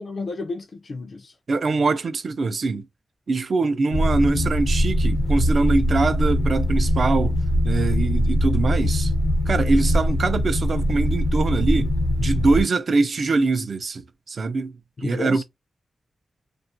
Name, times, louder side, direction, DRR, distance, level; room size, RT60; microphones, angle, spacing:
voice 1, 0.0-1.4 15.0-15.4, left 3 dB, 55° left, 0.3 m, -32 dB
voice 2, 1.5-2.9 3.3-7.4 7.6-9.1 9.5-14.0 14.3-14.7 15.0-15.4, right 3 dB, 60° right, 0.4 m, -23 dB
sound 1, 3.9-12.6, equal, 90° left, 0.6 m, -22 dB
2.3 x 2.0 x 2.6 m
wide cardioid pair, 90°, 0 cm